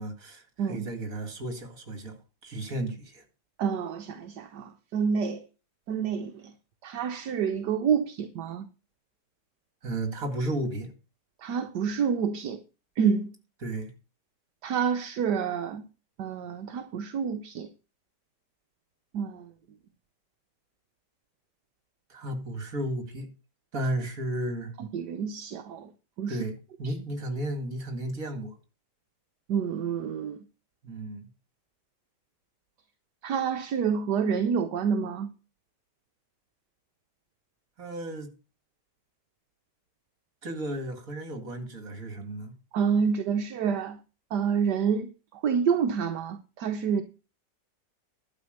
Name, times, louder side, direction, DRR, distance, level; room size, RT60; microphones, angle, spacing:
voice 1, 0.0-2.2 2.4-3.2 9.8-10.9 13.6-13.9 22.1-23.3 23.7-24.7 26.3-26.5 26.8-28.5 30.8-31.3 37.8-38.3 40.4-42.5, right 1 dB, 50° right, 2.6 m, -33 dB
voice 2, 3.6-5.5 5.9-6.5 6.8-8.7 11.4-12.6 13.0-13.3 14.6-15.8 16.2-17.7 19.1-19.5 24.8-25.9 26.2-26.4 26.8-26.9 29.5-30.4 33.2-35.3 42.7-44.0 44.3-47.0, right 7 dB, 75° right, 1.5 m, -28 dB
11.5 x 5.2 x 7.9 m
omnidirectional pair, 1.9 m